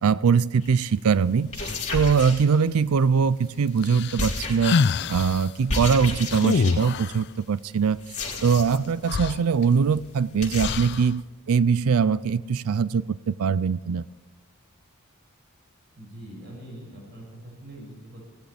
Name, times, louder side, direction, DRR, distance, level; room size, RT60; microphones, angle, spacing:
voice 1, 0.0-4.8 5.1-8.0 8.4-11.2 11.5-14.0, right 6 dB, 70° right, 18 dB, 0.4 m, -22 dB
sound 1, 0.6-0.8 1.4-3.0 4.2-5.0 5.7-7.0 8.0-8.9 9.2-9.3 9.6-9.7 9.9-10.0 10.4-10.7, left 2 dB, 35° left, 3.6 m, -32 dB
sound 2, 3.8-5.4 6.3-7.2 8.7-8.8 9.1-10.1 10.6-11.1, left 5 dB, 50° left, 0.4 m, -26 dB
voice 2, 15.9-18.3, right 1 dB, 50° right, -1 dB, 6.3 m, -43 dB
21.5 x 17.0 x 3.4 m, 1.3 s
head